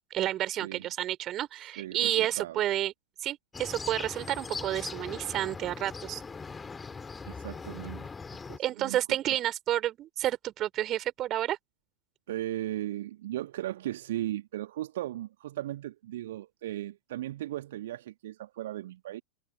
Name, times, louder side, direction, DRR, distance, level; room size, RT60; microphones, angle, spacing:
voice 1, 0.1-2.9 3.2-6.2 8.6-11.6, right 13 dB, 30° right, 3.8 m, -30 dB
voice 2, 1.8-2.6 7.3-8.1 8.5-9.4 12.3-19.2, right 14 dB, 55° right, 1.6 m, -37 dB
sound 1, 3.5-8.6, left 4 dB, 15° left, 3.2 m, -40 dB
figure-of-eight pair, 90°, 0 cm